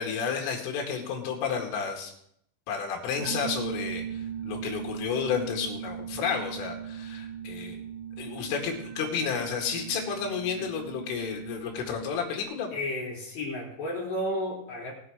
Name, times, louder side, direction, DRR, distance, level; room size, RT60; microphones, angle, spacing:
voice 1, 0.0-2.1 2.7-7.8 8.2-12.8, left 6 dB, 85° left, 1 dB, 4.6 m, -31 dB
sound 1, 3.2-12.4, right 9 dB, 85° right, 3.3 m, -39 dB
voice 2, 12.7-14.9, left 1 dB, 40° left, -4 dB, 4.4 m, -32 dB
20.5 x 6.9 x 5.0 m, 0.70 s
omnidirectional pair, 5.6 m